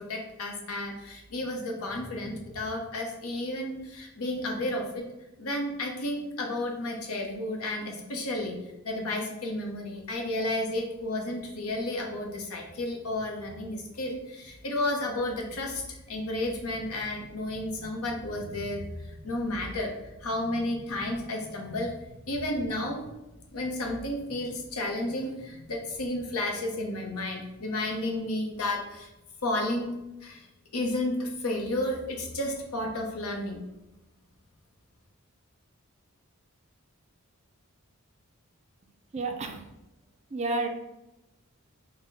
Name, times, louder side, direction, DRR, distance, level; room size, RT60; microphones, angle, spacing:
voice 1, 0.0-5.0 5.4-8.6 8.8-19.9 20.2-21.9 22.2-23.1 23.5-29.1 29.4-29.9 30.2-30.5 30.7-33.6, left 1 dB, 75° left, 2 dB, 0.8 m, -32 dB
voice 2, 39.1-39.6 40.3-40.7, right 3 dB, 30° right, 4 dB, 0.3 m, -30 dB
4.0 x 2.1 x 4.0 m, 0.98 s
head